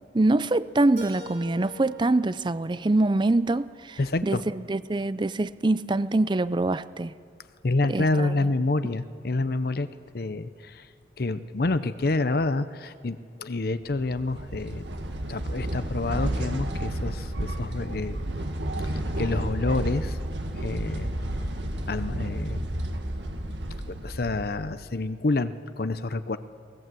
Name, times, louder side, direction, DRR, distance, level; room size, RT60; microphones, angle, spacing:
voice 1, 0.1-7.1 7.9-8.3, right 2 dB, 25° right, 0.5 m, -24 dB
Keyboard (musical), 1.0-3.9, left 1 dB, 45° right, 4.2 m, -45 dB
voice 2, 4.0-4.4 7.6-9.9 10.1-10.9 11.2-14.8 15.3-18.2 18.8-20.2 20.5-21.1 21.9-22.6 23.9-26.4, left 2 dB, 55° left, 0.7 m, -28 dB
sound 1, 13.9-24.9, right 1 dB, 75° right, 1.8 m, -31 dB
23.5 x 18.5 x 7.7 m
head